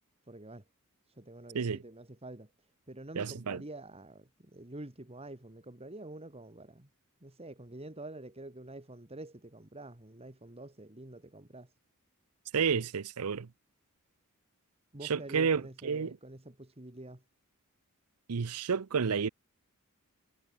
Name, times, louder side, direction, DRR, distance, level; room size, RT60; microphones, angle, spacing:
voice 1, 0.3-0.6 1.1-2.5 2.9-6.9 7.2-11.7 14.9-17.2, right 2 dB, 25° right, 2.0 m, -47 dB
voice 2, 3.2-3.6 12.5-13.5 15.0-16.2 18.3-19.3, right 6 dB, 90° right, 0.7 m, -30 dB
head